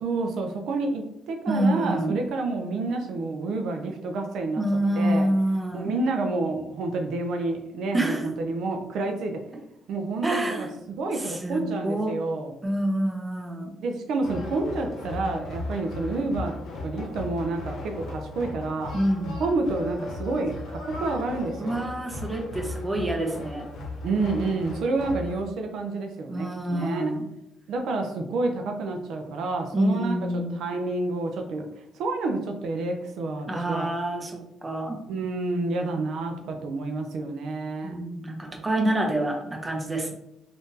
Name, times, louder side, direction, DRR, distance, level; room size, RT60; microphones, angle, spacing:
voice 1, 0.0-4.6 4.9-5.3 5.7-9.3 9.9-10.7 11.0-12.5 13.8-18.9 19.4-21.8 24.0-27.0 27.7-31.7 31.9-33.9 35.1-38.0, right 3 dB, 80° right, 3 dB, 0.4 m, -29 dB
voice 2, 1.5-2.2 4.6-5.9 7.9-8.3 10.2-10.7 11.1-12.1 12.6-13.7 18.9-19.3 21.6-23.7 26.3-27.2 29.7-30.6 33.5-35.0 37.8-40.1, right 1 dB, 20° right, 1 dB, 0.7 m, -27 dB
sound 1, 14.2-25.5, left 2 dB, 75° left, 0.8 m, -36 dB
3.5 x 2.5 x 2.7 m, 0.81 s
cardioid pair, 90°, 0 cm